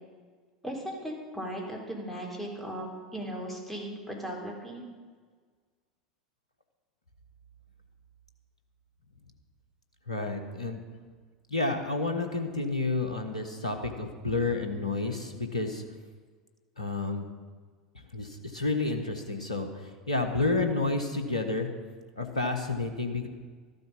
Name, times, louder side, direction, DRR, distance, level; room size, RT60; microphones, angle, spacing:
voice 1, 0.6-4.9, right 1 dB, 5° left, -1 dB, 3.7 m, -37 dB
voice 2, 10.1-10.8 11.5-15.8 16.8-17.2 18.1-21.7 22.2-23.3, left 3 dB, 80° left, 6 dB, 1.3 m, -30 dB
13.5 x 12.0 x 5.4 m, 1.5 s
figure-of-eight pair, 75°, 4 cm